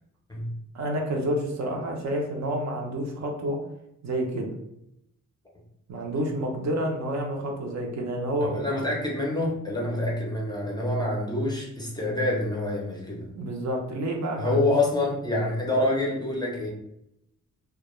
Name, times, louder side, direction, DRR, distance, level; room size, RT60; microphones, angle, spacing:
voice 1, 0.7-3.6 4.0-4.5 5.9-8.5 13.3-14.7, right 1 dB, 65° right, 1 dB, 0.6 m, -29 dB
voice 2, 8.4-13.2 14.4-16.7, left 1 dB, 15° left, -3 dB, 0.4 m, -26 dB
2.3 x 2.1 x 2.9 m, 0.80 s
wide cardioid pair, 165°, 30 cm